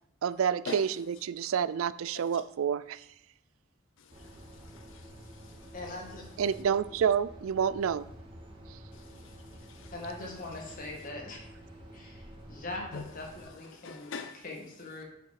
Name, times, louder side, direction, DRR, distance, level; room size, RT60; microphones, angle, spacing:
voice 1, 0.2-3.0 6.4-8.0, right 7 dB, 80° right, 0.4 m, -29 dB
voice 2, 4.0-5.7 8.9-9.9 12.9-13.0 13.7-14.4, left 5 dB, 65° left, 0.5 m, -44 dB
sound 1, 4.1-13.4, equal, 25° right, 1.8 m, -49 dB
voice 3, 5.7-6.3 9.9-11.5 11.9-15.0, left 2 dB, 40° left, 2.1 m, -42 dB
7.2 x 5.8 x 5.9 m
head